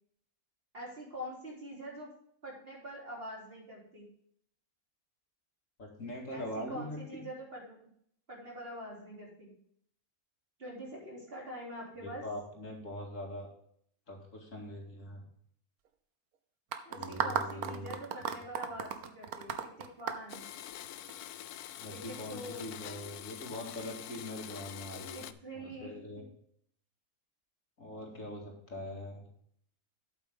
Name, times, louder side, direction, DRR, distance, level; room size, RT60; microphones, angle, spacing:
voice 1, 0.7-2.1 2.4-4.1 6.3-7.9 8.3-9.5 10.6-12.3 16.9-20.5 21.9-22.7 25.0-26.2, equal, 40° right, -3 dB, 3.5 m, -45 dB
voice 2, 5.8-7.2 12.0-13.5 14.1-15.2 16.9-17.9 21.8-25.3 25.5-26.2 27.8-29.2, left 1 dB, 60° left, 0 dB, 2.6 m, -42 dB
sound 1, 16.7-21.1, right 8 dB, 85° right, 1.4 m, -35 dB
Domestic sounds home sounds, 20.3-25.3, left 12 dB, 90° left, 1.1 m, -45 dB
8.5 x 8.2 x 3.7 m, 0.67 s
omnidirectional pair, 1.6 m